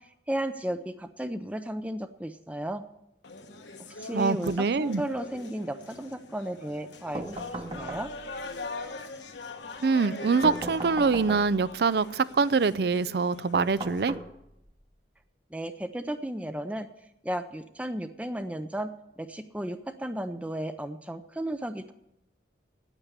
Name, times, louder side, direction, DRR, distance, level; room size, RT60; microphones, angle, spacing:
voice 1, 0.3-2.8 4.0-4.5 4.8-7.4 7.6-8.1 15.5-16.9 17.2-18.9 19.2-21.9, right 1 dB, 5° right, 9 dB, 0.5 m, -34 dB
sound 1, 3.2-14.0, left 3 dB, 75° left, 1.2 m, -42 dB
voice 2, 4.1-5.0 9.8-14.1, right 4 dB, 60° right, 18 dB, 0.4 m, -24 dB
sound 2, 7.1-8.4 10.4-11.7 13.5-14.7, right 2 dB, 30° right, 0.9 m, -37 dB
9.4 x 9.1 x 9.7 m, 0.85 s
head